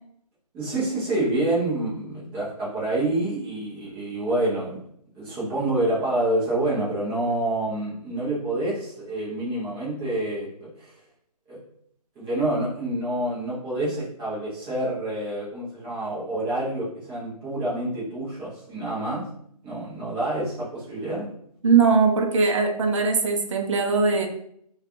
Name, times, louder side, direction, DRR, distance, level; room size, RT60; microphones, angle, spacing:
voice 1, 0.5-4.8 5.1-10.9 11.5-11.6 12.2-19.2 19.6-21.3, right 1 dB, 10° right, -7 dB, 0.7 m, -27 dB
voice 2, 21.6-24.3, right 4 dB, 50° right, 3 dB, 0.5 m, -20 dB
3.3 x 2.3 x 2.5 m, 0.68 s
figure-of-eight pair, 155°, 20 cm